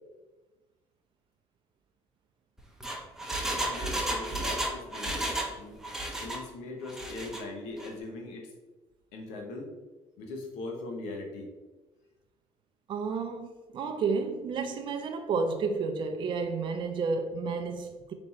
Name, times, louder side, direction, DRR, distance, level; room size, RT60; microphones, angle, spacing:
Engine, 2.6-5.6 5.8-6.4 6.9-7.4 7.8-7.9, right 1 dB, 5° right, 0.7 m, -33 dB
voice 1, 3.6-5.8 6.2-8.5 9.1-9.7 10.2-11.5, left 2 dB, 90° left, 1 dB, 0.9 m, -40 dB
voice 2, 12.9-18.1, right 4 dB, 45° right, 5 dB, 0.4 m, -31 dB
3.4 x 3.0 x 4.2 m, 1.2 s
cardioid pair, 105°, 12 cm